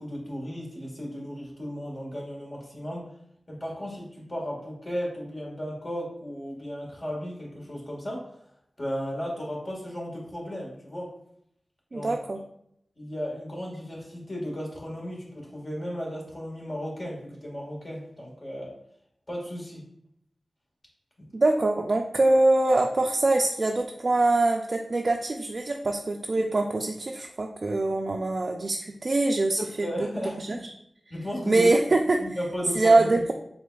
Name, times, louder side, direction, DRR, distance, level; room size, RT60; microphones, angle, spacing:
voice 1, 0.0-3.1 3.5-8.3 8.8-11.1 11.9-12.1 13.0-18.7 19.3-19.8 29.6-30.7 31.1-31.7 32.2-33.1, equal, 45° left, -2 dB, 1.5 m, -35 dB
voice 2, 11.9-12.4 21.3-29.9 30.4-30.7 31.5-32.2 32.8-33.3, right 2 dB, 55° right, 2 dB, 0.3 m, -23 dB
5.0 x 3.5 x 2.3 m, 0.73 s
cardioid pair, 40°, 0 cm